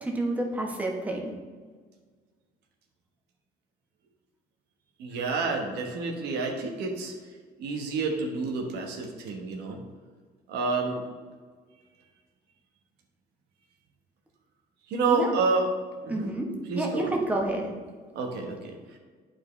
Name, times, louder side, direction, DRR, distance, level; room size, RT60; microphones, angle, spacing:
voice 1, 0.0-1.3 15.1-15.3 16.1-16.5 16.7-17.7, right 1 dB, 10° right, 0 dB, 1.2 m, -29 dB
voice 2, 5.0-7.1 7.6-9.8 10.5-11.0 14.9-15.6 16.1-16.3 16.7-17.1 18.1-18.8, right 4 dB, 80° right, 2 dB, 1.2 m, -29 dB
9.5 x 4.4 x 3.3 m, 1.5 s
cardioid pair, 110°, 17 cm